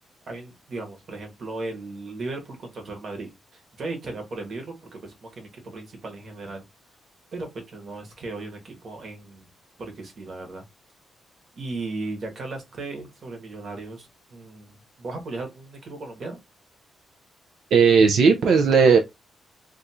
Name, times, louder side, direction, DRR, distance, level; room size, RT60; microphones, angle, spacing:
voice 1, 0.3-6.6 7.3-9.5 9.8-10.6 11.6-16.4, right 3 dB, 40° right, 1.1 m, -36 dB
voice 2, 17.7-19.0, right 5 dB, 75° right, 0.4 m, -16 dB
2.5 x 2.4 x 4.1 m
wide cardioid pair, 160°, 0 cm